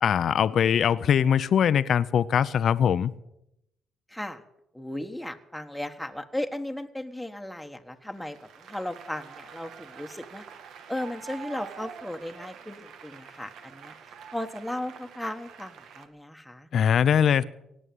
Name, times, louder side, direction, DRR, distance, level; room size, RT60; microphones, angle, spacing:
voice 1, 0.0-3.1 16.7-17.4, left 8 dB, 60° left, 0.6 m, -22 dB
voice 2, 4.1-4.4 4.7-8.4 8.7-10.4 10.9-13.9 14.3-16.7, left 1 dB, ahead, 1.3 m, -36 dB
Applause, 8.1-16.1, right 7 dB, 80° right, 1.8 m, -46 dB
17.5 x 8.3 x 9.2 m
cardioid pair, 90°, 0 cm